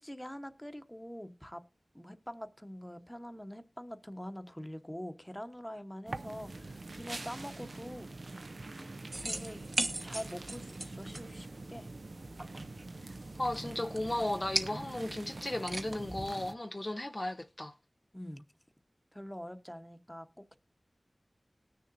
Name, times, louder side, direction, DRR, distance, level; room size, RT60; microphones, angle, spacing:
voice 1, 0.0-1.6 1.9-8.4 8.8-8.9 9.2-9.6 10.0-11.9 18.1-18.4 19.1-20.6, equal, 10° left, 0.9 m, -45 dB
sound 1, 6.1-16.5, right 2 dB, 75° right, 0.5 m, -45 dB
sound 2, 9.1-16.3, right 2 dB, 50° right, 1.1 m, -40 dB
voice 2, 13.0-17.8, left 1 dB, 35° left, 0.5 m, -35 dB
19.5 x 6.7 x 2.5 m
wide cardioid pair, 55°, 0 cm